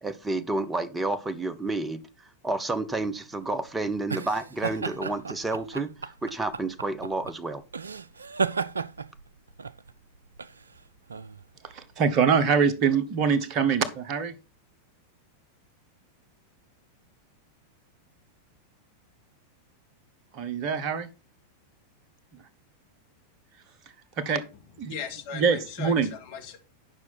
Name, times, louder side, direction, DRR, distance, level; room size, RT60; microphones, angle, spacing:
voice 1, 0.0-2.0 2.4-5.9 6.2-7.6, right 2 dB, 10° right, 0.9 m, -30 dB
sound 1, 3.1-12.2, right 5 dB, 75° right, 0.3 m, -35 dB
voice 2, 11.6-14.3 20.3-21.1 24.2-24.4 24.8-24.9 25.3-26.1, right 6 dB, 40° right, 1.2 m, -24 dB
voice 3, 24.8-26.6, left 6 dB, 50° left, 2.0 m, -38 dB
9.8 x 5.9 x 4.3 m
figure-of-eight pair, 90°, 0 cm